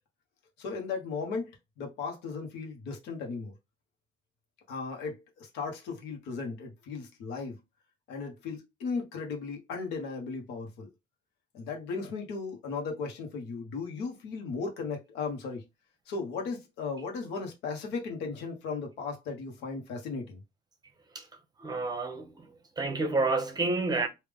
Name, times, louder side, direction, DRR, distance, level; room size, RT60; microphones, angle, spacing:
voice 1, 0.6-3.5 4.7-7.6 8.1-10.9 11.5-15.7 16.1-20.4, left 4 dB, 85° left, 1.2 m, -36 dB
voice 2, 21.6-22.5 22.8-24.1, right 3 dB, 25° right, 0.8 m, -29 dB
3.5 x 2.6 x 3.5 m
cardioid pair, 110°, 17 cm